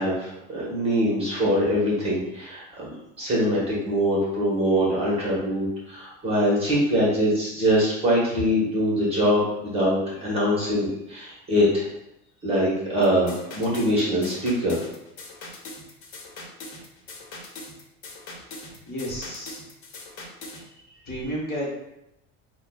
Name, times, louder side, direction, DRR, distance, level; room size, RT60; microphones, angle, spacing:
voice 1, 0.0-11.9 12.4-14.8, equal, 20° right, -6 dB, 1.1 m, -23 dB
sound 1, 13.0-20.6, left 2 dB, 85° left, 1.0 m, -41 dB
voice 2, 18.9-19.6 21.1-21.7, equal, 30° left, -5 dB, 1.1 m, -31 dB
5.6 x 2.2 x 2.3 m, 0.86 s
cardioid pair, 145°, 31 cm